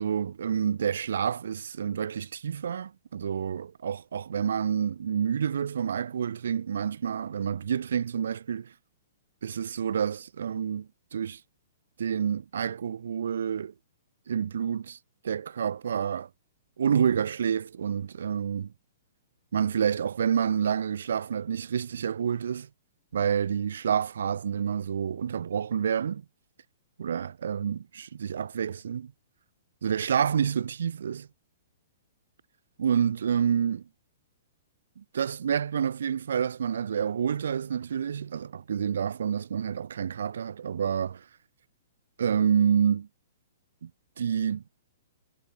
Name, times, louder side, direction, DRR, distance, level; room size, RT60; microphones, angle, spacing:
voice 1, 0.0-8.7 9.4-11.4 12.0-13.7 14.3-15.0 15.2-16.3 16.8-18.7 19.5-22.7 23.1-26.2 27.0-29.1 29.8-31.3 32.8-33.8 35.0-41.2 42.2-43.1 43.8-43.9 44.2-44.6, right 8 dB, 75° right, 0.3 m, -28 dB
hypercardioid pair, 180°, 0 cm